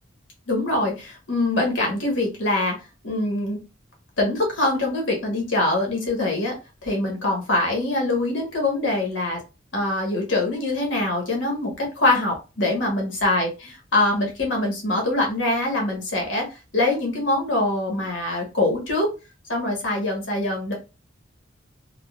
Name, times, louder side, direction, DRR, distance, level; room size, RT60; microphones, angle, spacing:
voice 1, 0.5-2.7 3.0-3.6 4.2-6.6 6.8-9.4 9.7-13.5 13.9-16.5 16.7-19.1 19.5-20.7, left 2 dB, 75° left, 0 dB, 1.2 m, -23 dB
3.6 x 2.1 x 2.3 m, 0.29 s
head